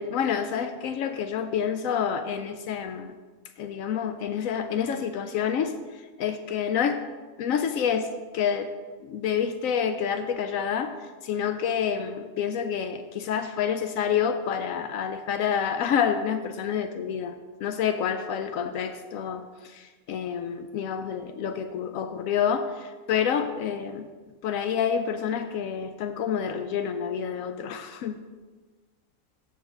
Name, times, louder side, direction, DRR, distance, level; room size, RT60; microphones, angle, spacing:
voice 1, 0.0-3.1 3.6-7.0 7.4-8.7 9.0-17.3 17.6-24.1 24.4-28.2, left 7 dB, 80° left, 8 dB, 1.0 m, -28 dB
9.4 x 6.2 x 5.0 m, 1.3 s
omnidirectional pair, 1.4 m